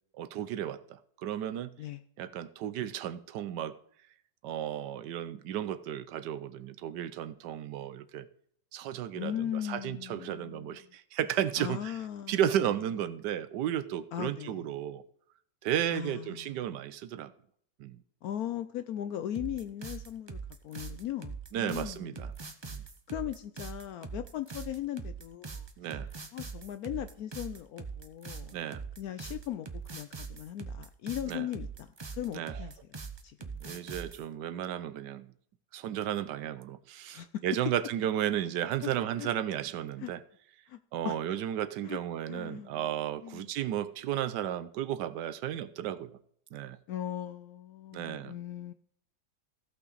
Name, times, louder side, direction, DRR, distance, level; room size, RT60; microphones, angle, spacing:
voice 1, 0.2-1.7 2.2-3.8 4.4-8.3 8.7-12.0 12.3-15.0 15.6-17.3 17.8-18.0 21.5-22.3 22.7-22.8 25.8-26.1 28.5-28.8 31.3-31.5 32.3-32.6 33.6-35.3 35.7-40.2 40.9-46.2 46.5-46.8 47.9-48.3, right 10 dB, 85° right, 1.3 m, -34 dB
voice 2, 9.1-10.8 11.6-12.4 14.1-14.7 15.9-16.7 18.2-20.4 20.6-22.3 23.1-25.7 26.3-28.5 29.0-33.0 33.2-33.6 37.1-37.4 39.2-39.3 40.0-40.1 40.7-40.8 41.0-41.2 41.8-42.0 42.3-42.9 43.2-43.5 46.9-48.7, left 11 dB, 70° left, 1.0 m, -38 dB
sound 1, 19.3-34.2, right 5 dB, 45° right, 0.3 m, -42 dB
16.0 x 5.8 x 4.0 m
omnidirectional pair, 1.8 m